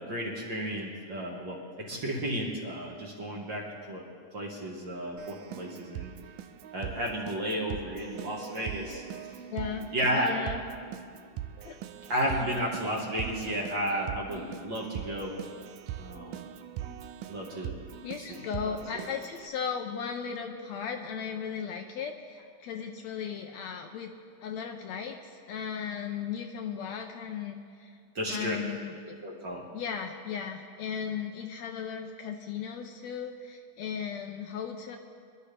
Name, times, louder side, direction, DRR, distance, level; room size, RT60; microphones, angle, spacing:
voice 1, 0.0-4.0 4.3-6.1 6.7-9.0 9.9-10.3 12.1-15.4 16.0-16.5 17.3-17.7 18.3-19.1 28.2-28.6 29.2-29.6, equal, 45° right, -2 dB, 2.0 m, -33 dB
Keyboard (musical), 5.2-19.5, right 10 dB, 90° right, 2.2 m, -41 dB
voice 2, 9.5-9.9 10.1-10.6 11.6-11.8 12.4-12.6 18.0-24.1 24.4-28.0 28.3-29.2 29.7-35.0, left 7 dB, 75° left, 4 dB, 1.8 m, -36 dB
24.5 x 11.5 x 3.4 m, 2.2 s
omnidirectional pair, 3.5 m